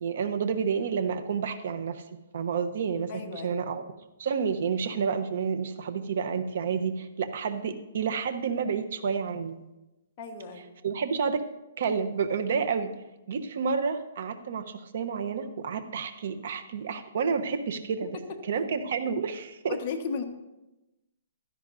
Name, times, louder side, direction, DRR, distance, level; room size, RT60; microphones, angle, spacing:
voice 1, 0.0-2.0 2.3-3.8 4.2-9.6 10.8-11.4 11.8-12.9 13.3-18.1 18.5-19.7, right 6 dB, 55° right, 9 dB, 1.0 m, -30 dB
voice 2, 3.1-3.5 10.2-10.7 19.7-20.2, left 5 dB, 30° left, 1 dB, 1.4 m, -34 dB
15.5 x 12.5 x 2.7 m, 1.0 s
hypercardioid pair, 165°, 0 cm